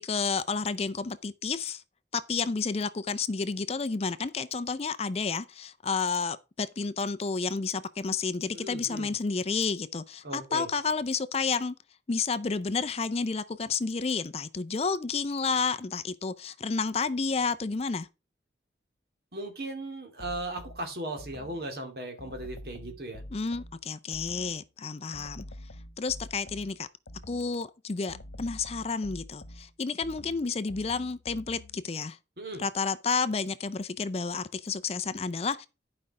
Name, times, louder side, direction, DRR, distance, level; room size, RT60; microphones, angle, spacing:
voice 1, 0.0-1.8 2.1-11.8 12.1-18.1 23.3-25.4 26.0-26.9 27.3-32.2 32.6-35.7, left 4 dB, 35° left, 0.5 m, -31 dB
voice 2, 8.5-9.1 10.2-10.7 19.3-23.2 32.4-32.6, right 1 dB, 55° right, 2.5 m, -37 dB
sound 1, 20.2-21.7 22.2-24.7 25.1-27.6 28.1-31.9, left 1 dB, 80° left, 1.0 m, -47 dB
11.0 x 5.3 x 4.8 m
head